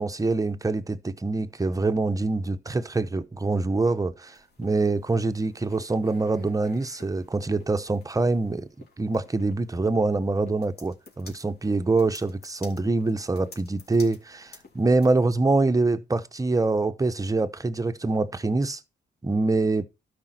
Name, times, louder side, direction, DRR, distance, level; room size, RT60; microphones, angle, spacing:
voice 1, 0.0-8.7 9.0-18.8 19.2-19.9, right 3 dB, 15° right, 0.9 m, -25 dB
sound 1, 4.2-15.3, left 3 dB, 50° left, 3.5 m, -52 dB
12.5 x 5.1 x 4.4 m
supercardioid pair, 70°, 20 cm